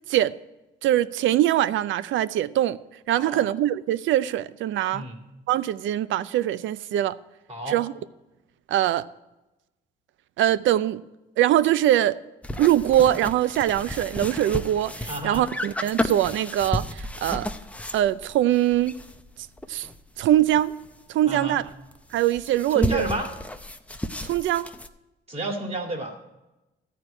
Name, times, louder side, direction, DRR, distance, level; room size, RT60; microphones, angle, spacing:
voice 1, 0.8-2.8 3.1-5.1 5.5-7.2 7.7-7.9 8.7-9.1 10.4-11.0 11.4-12.2 12.6-17.5 17.9-18.9 19.7-19.9 20.2-20.8 21.1-21.6 22.1-23.0 24.2-24.7, right 12 dB, 75° right, 0.5 m, -22 dB
voice 2, 3.1-3.4 4.9-5.2 7.5-7.8 15.1-15.4 21.3-21.6 22.7-23.3 25.3-26.2, right 2 dB, 30° right, 2.4 m, -30 dB
sound 1, 12.4-21.0 21.4-21.5 21.6-24.9, left 1 dB, 5° left, 0.6 m, -33 dB
14.0 x 4.7 x 8.5 m
cardioid pair, 90°, 20 cm